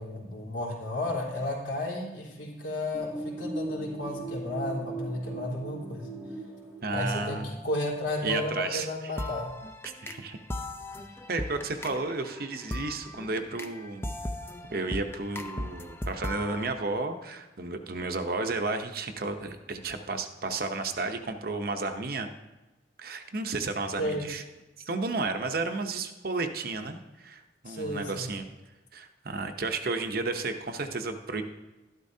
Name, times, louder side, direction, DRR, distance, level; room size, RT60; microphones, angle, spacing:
voice 1, 0.0-6.1 6.9-9.5 24.0-24.3 27.7-28.3, left 1 dB, 90° left, -4 dB, 3.7 m, -33 dB
sound 1, 2.9-7.4, right 1 dB, 5° right, 1.1 m, -38 dB
voice 2, 6.8-7.5 8.2-9.1 10.0-10.4 11.3-14.1 14.7-22.3 23.0-24.4 24.8-28.4 28.9-31.4, right 3 dB, 55° right, 7 dB, 0.8 m, -32 dB
sound 2, 7.0-8.0 8.2-16.7, left 1 dB, 15° left, 0.6 m, -38 dB
12.5 x 12.0 x 2.8 m, 1.1 s
head